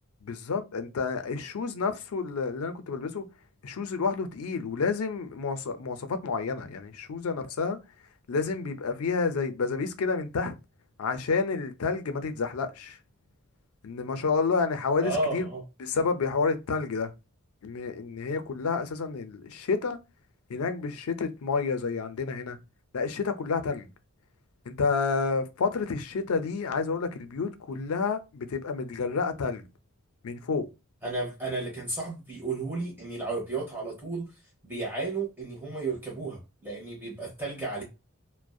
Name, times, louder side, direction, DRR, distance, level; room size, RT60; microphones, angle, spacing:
voice 1, 0.2-3.3 3.6-7.8 8.3-10.6 11.0-13.0 13.8-15.5 15.8-17.1 17.6-20.0 20.5-22.6 22.9-23.9 24.7-29.7 30.2-30.7, left 4 dB, 85° left, 0.5 m, -29 dB
voice 2, 15.0-15.6 31.0-34.3 34.6-37.8, right 3 dB, 10° right, 0.7 m, -33 dB
2.6 x 2.1 x 2.3 m
head